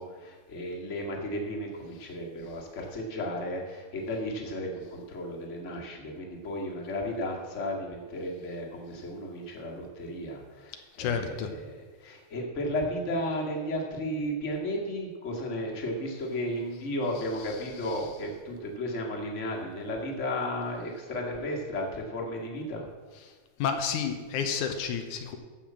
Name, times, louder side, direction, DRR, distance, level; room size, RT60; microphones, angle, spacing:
voice 1, 0.0-11.7 12.0-22.8, left 1 dB, 25° left, -1 dB, 1.9 m, -34 dB
voice 2, 11.0-11.5 17.9-18.0 23.6-25.4, left 7 dB, 90° left, 6 dB, 2.5 m, -30 dB
14.0 x 5.7 x 7.4 m, 1.4 s
omnidirectional pair, 3.4 m